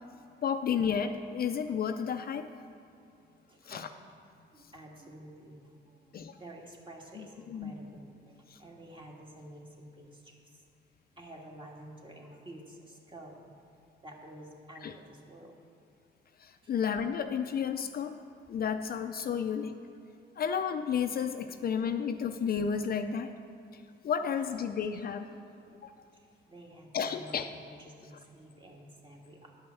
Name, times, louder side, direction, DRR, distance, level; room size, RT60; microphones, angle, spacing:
voice 1, 0.4-2.5 3.7-3.9 6.1-6.4 7.2-7.7 8.5-8.6 14.8-14.9 16.4-18.2 18.5-19.8 20.4-23.3 23.7-25.3 25.8-25.9 26.9-27.5, left 7 dB, 50° left, 7 dB, 0.5 m, -32 dB
voice 2, 3.3-3.9 4.5-10.6 11.1-13.6 14.0-15.5 16.6-16.7 25.5-25.8 26.1-29.5, right 1 dB, 25° right, -1 dB, 1.8 m, -51 dB
10.5 x 5.4 x 7.0 m, 2.6 s
cardioid pair, 90°, 20 cm